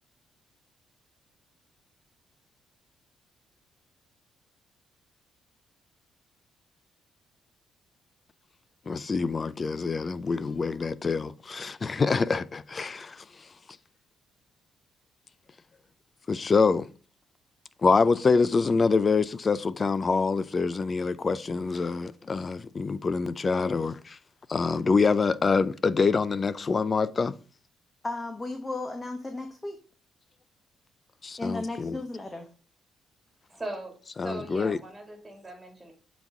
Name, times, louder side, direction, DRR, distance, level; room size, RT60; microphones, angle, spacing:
voice 1, 8.9-13.2 16.3-16.9 17.8-24.2 24.5-27.4 31.2-32.0 34.2-34.8, left 4 dB, 35° left, 0.4 m, -25 dB
voice 2, 28.0-29.8 31.4-32.5, left 2 dB, 20° left, 0.9 m, -34 dB
voice 3, 33.5-33.9 34.2-35.9, right 1 dB, 15° right, 2.3 m, -39 dB
7.3 x 4.0 x 3.6 m
cardioid pair, 90°, 0 cm